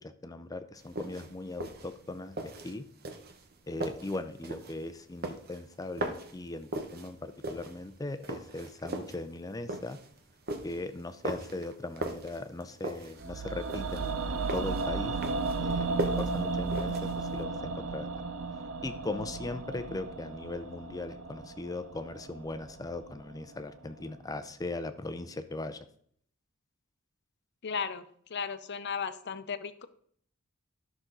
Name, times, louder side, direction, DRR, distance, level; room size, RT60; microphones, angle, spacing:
voice 1, 0.0-2.8 3.7-10.0 10.6-15.2 15.6-18.1 18.8-25.8, left 2 dB, 15° left, 10 dB, 0.5 m, -39 dB
sound 1, 0.8-17.4, right 2 dB, 50° right, 1.0 m, -39 dB
sound 2, 13.2-23.3 23.6-23.7, right 4 dB, 70° right, 0.7 m, -34 dB
voice 2, 27.6-28.0 28.3-29.9, left 6 dB, 55° left, 12 dB, 0.7 m, -35 dB
12.5 x 6.1 x 3.9 m, 0.63 s
head